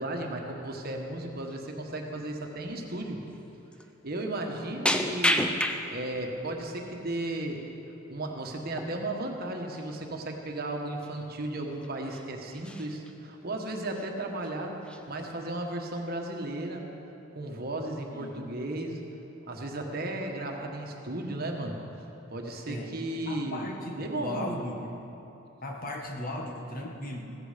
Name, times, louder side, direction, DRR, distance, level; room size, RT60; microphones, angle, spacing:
voice 1, 0.0-3.2 4.0-5.5 5.9-7.6 8.1-14.8 15.1-16.9 17.3-19.0 19.5-21.8 22.3-23.6 24.0-24.5, right 1 dB, 50° right, 2 dB, 1.4 m, -35 dB
sound 1, 0.7-1.0 1.4-1.6 2.2-2.3 3.3-3.4 3.7-3.9 4.9-6.2 6.6-7.3 8.7-9.0 9.3-9.4 9.8-10.0 10.7-10.8 11.0-11.2 11.7-12.2 12.5-13.1 13.7-14.1 14.4-14.5 14.8-15.5 16.0-16.4, left 1 dB, 5° left, 0.6 m, -31 dB
voice 2, 23.3-24.9 25.6-27.2, left 1 dB, 45° left, 1 dB, 1.7 m, -37 dB
15.5 x 14.0 x 5.2 m, 3.0 s
head